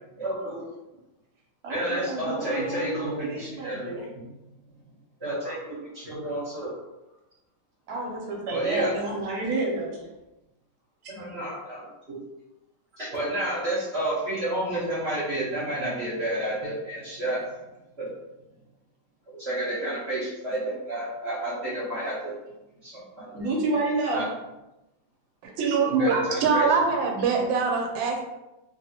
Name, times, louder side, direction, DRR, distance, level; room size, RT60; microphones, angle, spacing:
voice 1, 0.2-0.6 1.7-3.9 4.2-4.3 5.2-6.7 8.5-8.9 11.1-12.2 13.0-17.4 18.0-18.1 19.3-22.3 22.8-23.3 24.1-24.3 26.0-26.7, right 1 dB, 45° right, -8 dB, 0.9 m, -30 dB
voice 2, 1.6-4.1 7.9-10.1 23.3-24.2, right 2 dB, 65° right, -2 dB, 1.0 m, -30 dB
voice 3, 25.4-28.2, right 4 dB, 85° right, 1 dB, 1.4 m, -23 dB
2.8 x 2.7 x 2.7 m, 0.97 s
omnidirectional pair, 2.1 m